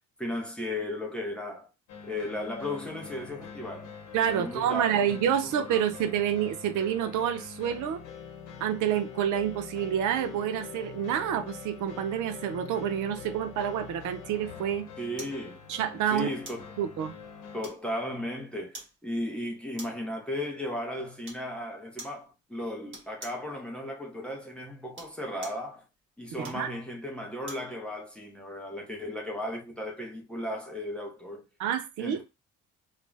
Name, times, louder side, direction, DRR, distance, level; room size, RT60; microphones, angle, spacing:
voice 1, 0.2-1.7 2.0-3.9 4.2-5.8 15.0-15.6 16.1-16.7 17.5-25.8 26.2-31.4 32.0-32.2, left 1 dB, 5° left, 0.5 m, -35 dB
sound 1, 1.9-17.6, left 6 dB, 85° left, 0.8 m, -44 dB
voice 2, 4.1-8.0 8.6-14.9 15.7-16.3 16.8-17.1 26.4-26.7 31.6-32.2, right 9 dB, 85° right, 0.5 m, -28 dB
sound 2, 15.2-15.4 16.4-16.7 17.6-18.1 18.7-19.0 19.8-20.1 21.2-21.5 22.0-22.2 22.9-23.5 24.8-25.7 26.4-27.7 28.2-28.3, right 2 dB, 40° right, 1.2 m, -45 dB
2.4 x 2.0 x 3.2 m
cardioid pair, 170°, 30 cm